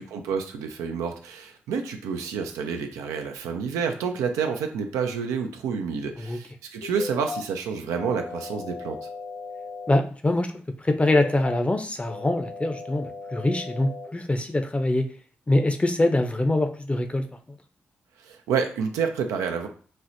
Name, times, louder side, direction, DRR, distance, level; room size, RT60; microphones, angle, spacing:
voice 1, 0.0-9.0 18.2-19.7, right 6 dB, 90° right, 5 dB, 0.4 m, -29 dB
sound 1, 6.8-7.4 8.0-10.0 11.0-11.6 12.1-14.1, left 4 dB, 85° left, 0.9 m, -37 dB
voice 2, 9.9-10.5 10.8-15.1 15.5-17.6, left 2 dB, 25° left, 7 dB, 0.6 m, -24 dB
4.2 x 2.0 x 2.6 m, 0.41 s
supercardioid pair, 40°, 5 cm